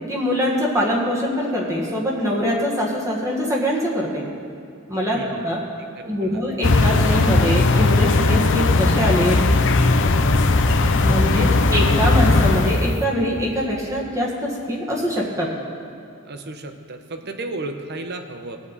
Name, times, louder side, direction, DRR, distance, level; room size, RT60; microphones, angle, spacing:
voice 1, 0.1-4.3 4.9-5.6 6.1-9.4 11.0-15.5, equal, 15° right, -4 dB, 1.7 m, -23 dB
voice 2, 5.1-5.4 6.0-6.4 11.2-11.6 16.2-18.6, right 2 dB, 50° right, 6 dB, 1.0 m, -34 dB
sound 1, 6.6-13.0, left 2 dB, 60° left, 0.7 m, -17 dB
20.5 x 7.4 x 4.2 m, 2.7 s
head